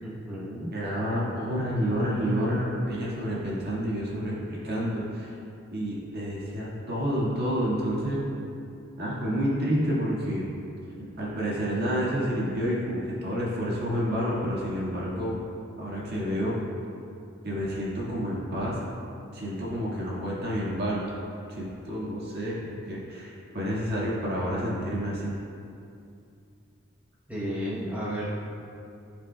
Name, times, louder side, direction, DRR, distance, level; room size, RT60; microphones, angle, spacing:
voice 1, 0.0-0.7 27.3-28.3, equal, 5° right, -9 dB, 0.9 m, -33 dB
voice 2, 0.7-5.3 5.7-8.2 9.0-10.4 11.2-15.4 15.8-16.6 17.4-18.8 19.3-21.1 21.5-25.3, equal, 55° right, -6 dB, 1.7 m, -29 dB
13.5 x 5.1 x 2.2 m, 2.6 s
head